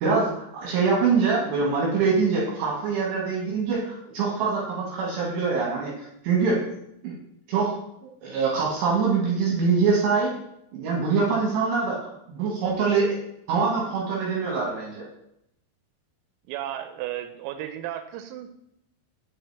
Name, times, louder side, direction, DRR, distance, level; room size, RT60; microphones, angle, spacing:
voice 1, 0.0-6.6 7.0-7.1 7.5-7.7 8.0-10.3 10.7-13.2 13.5-15.0, right 5 dB, 70° right, -3 dB, 3.1 m, -24 dB
voice 2, 16.5-18.5, right 12 dB, 90° right, 7 dB, 3.3 m, -34 dB
7.6 x 7.0 x 3.3 m, 0.79 s
omnidirectional pair, 6.0 m